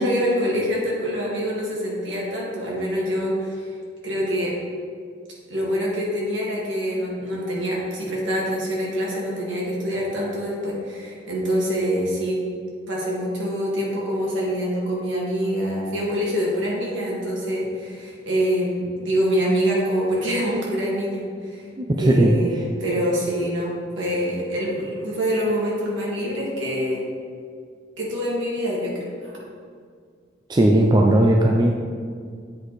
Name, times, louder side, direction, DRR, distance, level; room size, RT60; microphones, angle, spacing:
voice 1, 0.0-3.6 4.0-4.6 5.5-12.4 12.9-21.6 22.0-27.1 28.0-29.3, equal, 70° right, -4 dB, 1.9 m, -25 dB
voice 2, 21.8-22.3 30.5-31.7, right 1 dB, 20° right, 0 dB, 0.4 m, -17 dB
8.1 x 5.0 x 4.1 m, 2.1 s
head